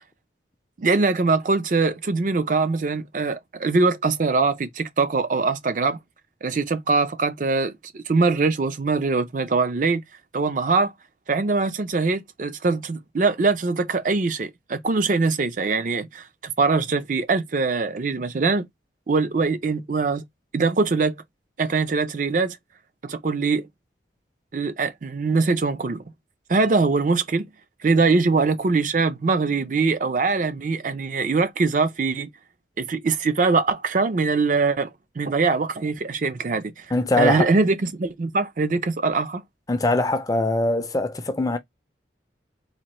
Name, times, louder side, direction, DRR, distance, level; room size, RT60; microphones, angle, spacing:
voice 1, 0.8-6.0 6.4-10.0 10.3-10.9 11.3-18.7 19.1-20.2 20.5-21.2 21.6-22.6 23.0-23.7 24.5-26.0 26.5-27.5 27.8-32.3 32.8-34.9 35.2-36.9 37.2-39.4, right 4 dB, 45° right, 0.4 m, -22 dB
voice 2, 36.9-37.5 39.7-41.6, left 2 dB, 20° left, 0.4 m, -22 dB
4.2 x 2.5 x 2.9 m
head